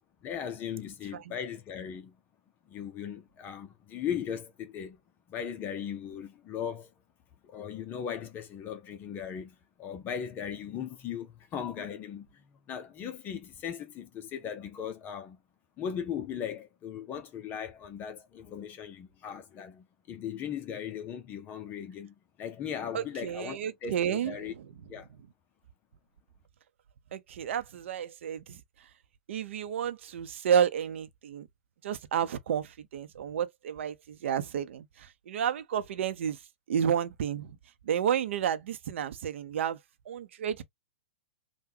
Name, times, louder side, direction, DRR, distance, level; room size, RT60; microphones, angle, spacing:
voice 1, 0.2-2.2 2.7-5.0 5.3-6.9 7.4-15.4 15.8-24.5 24.9-25.1, left 8 dB, 25° left, 0.6 m, -38 dB
voice 2, 22.9-24.4 27.1-28.6 29.3-31.5 31.8-36.4 36.7-37.6 37.9-39.8 40.1-40.6, right 8 dB, 65° right, 0.7 m, -31 dB
3.6 x 2.2 x 2.7 m
hypercardioid pair, 125°, 7 cm